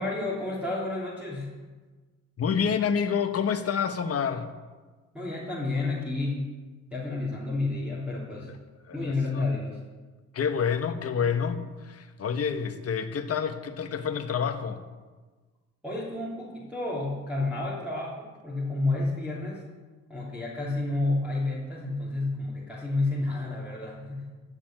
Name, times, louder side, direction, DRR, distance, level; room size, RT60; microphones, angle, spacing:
voice 1, 0.0-1.5 5.1-6.5 6.9-8.5 8.9-9.8 15.8-19.6 20.1-24.3, left 2 dB, 5° right, -6 dB, 3.2 m, -30 dB
voice 2, 2.4-4.5 8.5-8.6 8.9-9.5 10.3-14.8, left 7 dB, 50° left, 8 dB, 1.3 m, -28 dB
12.5 x 7.0 x 8.9 m, 1.3 s
cardioid pair, 90°, 30 cm